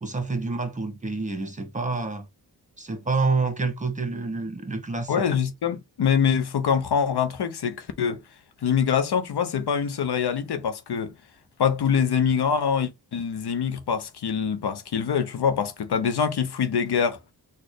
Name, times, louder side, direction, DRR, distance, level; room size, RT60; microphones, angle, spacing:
voice 1, 0.0-2.3 2.8-5.1, right 3 dB, 20° right, 1.4 m, -28 dB
voice 2, 5.1-8.2 8.6-11.1 11.6-17.2, left 7 dB, 80° left, 0.8 m, -24 dB
4.2 x 2.5 x 4.8 m
wide cardioid pair, 80°, 39 cm